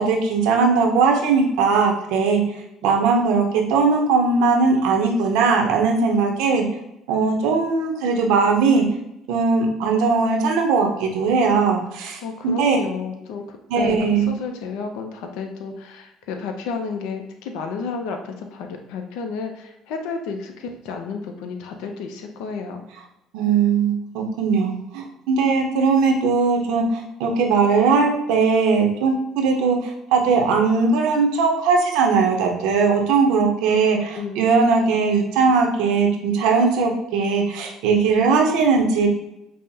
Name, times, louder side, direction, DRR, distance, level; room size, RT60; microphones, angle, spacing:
voice 1, 0.0-2.4 2.8-6.6 7.1-8.8 9.3-12.8 13.7-14.3 23.3-39.1, right 4 dB, 85° right, 2 dB, 0.7 m, -19 dB
voice 2, 12.2-14.0 14.3-22.8 33.7-34.4, left 5 dB, 85° left, 4 dB, 0.5 m, -31 dB
5.4 x 2.0 x 2.7 m, 0.86 s
cardioid pair, 105°, 0 cm